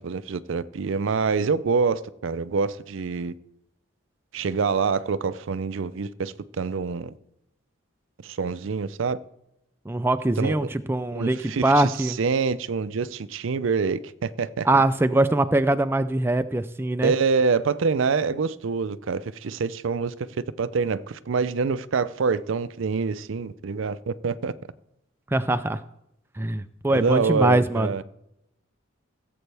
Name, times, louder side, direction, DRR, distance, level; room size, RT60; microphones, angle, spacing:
voice 1, 0.0-3.3 4.3-7.1 8.2-9.2 10.4-10.7 11.1-14.7 17.0-20.1 20.6-24.5 26.9-28.0, right 5 dB, 70° right, 0.5 m, -26 dB
voice 2, 9.9-12.2 14.6-17.1 25.3-25.8 26.4-27.9, right 2 dB, 10° right, 0.3 m, -22 dB
16.5 x 7.9 x 3.4 m
head